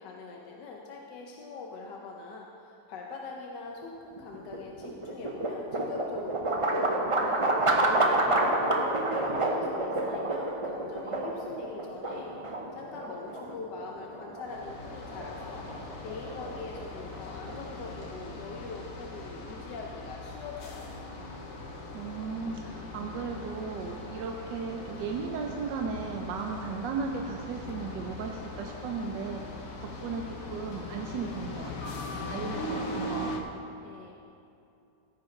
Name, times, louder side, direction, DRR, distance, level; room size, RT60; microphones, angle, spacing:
voice 1, 0.0-15.7 16.0-20.9 33.8-34.1, left 4 dB, 80° left, 0 dB, 1.4 m, -43 dB
sound 1, 4.1-18.2, right 2 dB, 50° right, 0.3 m, -30 dB
sound 2, 14.5-33.4, left 2 dB, 55° left, 1.2 m, -40 dB
voice 2, 21.9-29.4 29.8-31.9 32.3-33.3, right 5 dB, 85° right, 2 dB, 1.3 m, -36 dB
15.5 x 9.6 x 3.2 m, 2.7 s
omnidirectional pair, 1.9 m